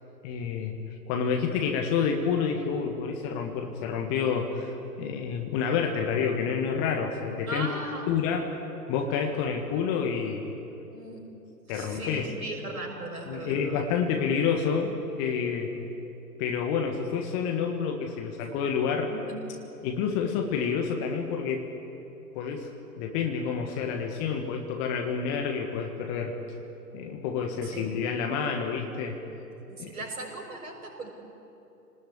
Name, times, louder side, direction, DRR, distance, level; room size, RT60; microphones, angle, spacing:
voice 1, 0.2-0.7 1.1-7.7 8.1-8.6 8.9-10.6 11.7-12.3 13.3-15.7 16.4-19.1 19.8-21.7 22.3-22.7 23.0-26.3 26.9-29.2 29.8-29.9, left 6 dB, 20° left, 3 dB, 1.5 m, -28 dB
voice 2, 7.5-8.1 10.9-11.3 11.7-13.9 19.1-19.3 27.6-27.9 29.7-31.1, right 2 dB, 60° right, 1 dB, 6.5 m, -38 dB
28.5 x 19.5 x 8.6 m, 3.0 s
figure-of-eight pair, 120°, 48 cm